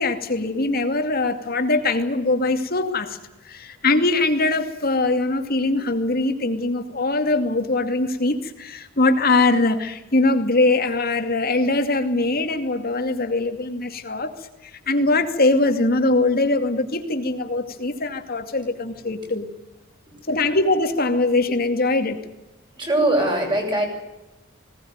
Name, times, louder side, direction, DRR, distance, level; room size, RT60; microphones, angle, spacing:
voice 1, 0.0-3.2 3.4-14.3 14.6-19.5 20.3-22.2, left 2 dB, 50° left, 7 dB, 2.5 m, -22 dB
voice 2, 22.8-23.9, right 1 dB, 25° right, 1 dB, 7.6 m, -21 dB
20.5 x 18.5 x 9.4 m, 0.97 s
head